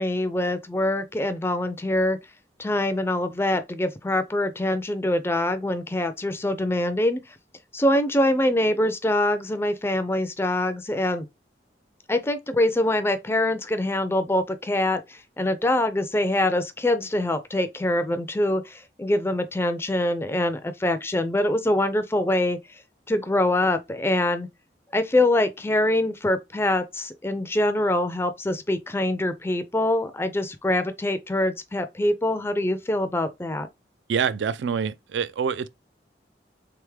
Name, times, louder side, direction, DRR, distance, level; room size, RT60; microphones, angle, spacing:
voice 1, 0.0-2.2 2.6-7.2 7.7-11.3 12.1-22.8 23.1-24.5 24.9-33.7, left 1 dB, 15° left, 0.4 m, -24 dB
voice 2, 34.1-35.7, right 6 dB, 75° right, 0.4 m, -26 dB
3.5 x 3.5 x 3.2 m
head